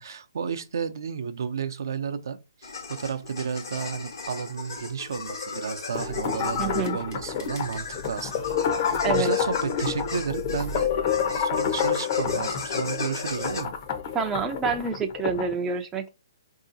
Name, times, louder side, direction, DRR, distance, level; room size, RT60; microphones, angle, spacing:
voice 1, 0.0-10.9 11.3-13.7, right 6 dB, 70° right, 0.5 m, -32 dB
sound 1, 2.6-13.6, left 5 dB, 75° left, 1.2 m, -37 dB
sound 2, 5.9-15.5, left 7 dB, 40° left, 0.7 m, -28 dB
voice 2, 6.6-7.0 9.0-9.3 14.1-16.1, right 5 dB, 15° right, 0.4 m, -27 dB
4.7 x 2.7 x 2.6 m
hypercardioid pair, 150°, 2 cm